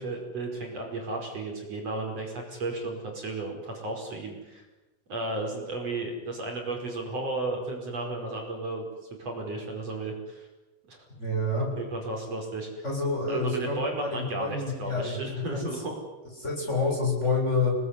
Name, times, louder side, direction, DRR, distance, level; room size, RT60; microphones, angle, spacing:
voice 1, 0.0-4.7 5.1-8.9 9.2-10.5 10.9-11.0 11.8-12.8 13.3-16.0, right 2 dB, 50° right, 1 dB, 6.2 m, -34 dB
voice 2, 11.2-11.7 12.8-15.6 16.4-17.7, left 3 dB, 20° left, -1 dB, 8.1 m, -28 dB
30.0 x 19.5 x 9.9 m, 1.1 s
omnidirectional pair, 3.7 m